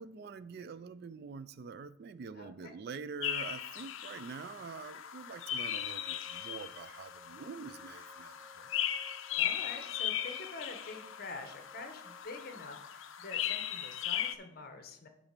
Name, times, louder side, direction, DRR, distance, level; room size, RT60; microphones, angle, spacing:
voice 1, 0.0-8.7, right 5 dB, 50° right, 16 dB, 0.3 m, -45 dB
voice 2, 2.3-2.7 9.4-15.1, left 3 dB, 45° left, 6 dB, 1.1 m, -46 dB
sound 1, 3.2-14.3, left 10 dB, 65° left, 0.6 m, -38 dB
sound 2, 5.2-12.2, right 1 dB, 5° right, 1.0 m, -61 dB
8.7 x 4.1 x 6.6 m, 0.79 s
head